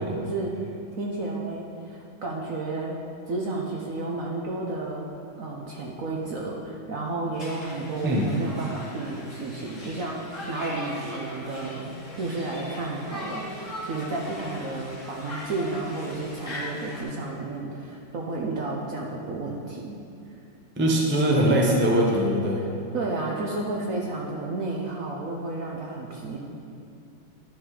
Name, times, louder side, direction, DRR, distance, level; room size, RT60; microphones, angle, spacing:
voice 1, 0.0-5.1 5.4-20.0 22.6-22.7 22.9-26.4, right 2 dB, 60° right, -2 dB, 1.0 m, -32 dB
Conversation, 7.3-17.0, left 1 dB, 40° left, 2.3 m, -40 dB
voice 2, 20.8-22.6, right 1 dB, 10° right, -2 dB, 0.5 m, -22 dB
11.0 x 5.6 x 4.9 m, 2.7 s
omnidirectional pair, 2.2 m